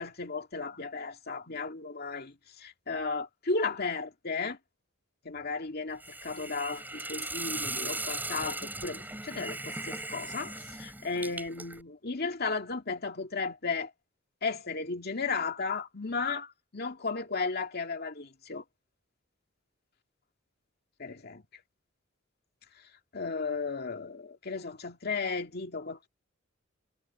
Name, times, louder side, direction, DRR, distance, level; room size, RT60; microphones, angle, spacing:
voice 1, 0.0-4.6 5.2-13.9 14.4-18.6 21.0-21.4 22.8-22.9 23.1-26.1, left 4 dB, 50° left, 2.2 m, -34 dB
Hiss, 6.0-11.8, right 2 dB, 10° right, 6.4 m, -38 dB
head